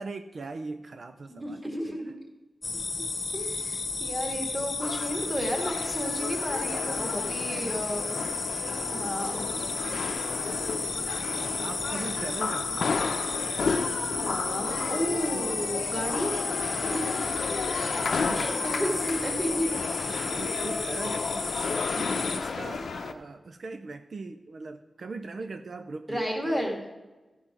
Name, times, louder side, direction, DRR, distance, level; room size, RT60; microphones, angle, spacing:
voice 1, 0.0-2.0 6.8-7.8 8.7-9.1 9.7-9.8 10.2-10.7 11.6-12.9 14.5-14.9 15.3-15.6 17.6-18.9 19.2-19.4 19.7-26.7, right 3 dB, 65° right, 8 dB, 0.5 m, -41 dB
voice 2, 1.3-2.1 3.3-8.2 8.9-9.5 9.8-10.0 14.2-16.4 16.9-17.0 18.3-19.7 26.1-26.8, equal, 10° right, 2 dB, 2.0 m, -32 dB
sound 1, 2.6-22.4, left 4 dB, 55° left, 1.2 m, -33 dB
sound 2, 4.8-23.1, left 4 dB, 80° left, 0.7 m, -33 dB
14.0 x 5.4 x 5.9 m, 1.2 s
wide cardioid pair, 105°, 0 cm